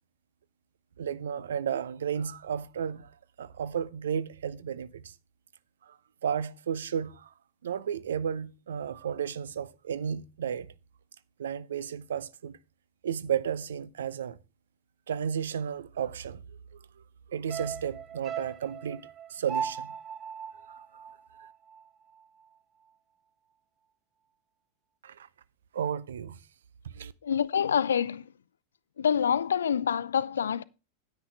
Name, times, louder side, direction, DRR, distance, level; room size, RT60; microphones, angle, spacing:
voice 1, 1.0-3.1 3.4-5.1 5.9-6.0 6.2-7.3 7.6-10.7 11.4-12.6 13.0-14.4 15.1-16.4 17.3-19.0 19.3-19.9 25.0-25.3 25.7-26.4 26.9-27.1, right 8 dB, 65° right, 0.8 m, -33 dB
sound 1, 17.5-21.9 22.2-22.3, right 7 dB, 25° right, 0.7 m, -38 dB
voice 2, 27.2-28.3 29.0-30.6, left 8 dB, 65° left, 0.6 m, -26 dB
10.0 x 9.8 x 3.5 m
figure-of-eight pair, 90°, 0 cm